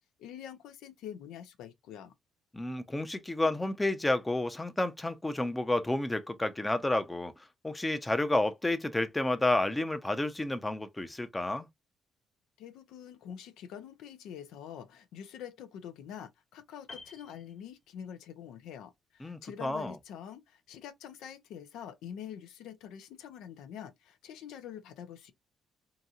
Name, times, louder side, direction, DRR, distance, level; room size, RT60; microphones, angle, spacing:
voice 1, 0.2-2.1 12.6-25.3, left 9 dB, 90° left, 0.5 m, -45 dB
voice 2, 2.5-11.7 19.2-20.0, left 2 dB, 15° left, 0.6 m, -30 dB
Piano, 16.9-18.3 18.6-18.8, left 3 dB, 50° left, 1.2 m, -51 dB
2.9 x 2.6 x 2.4 m
cardioid pair, 90°, 0 cm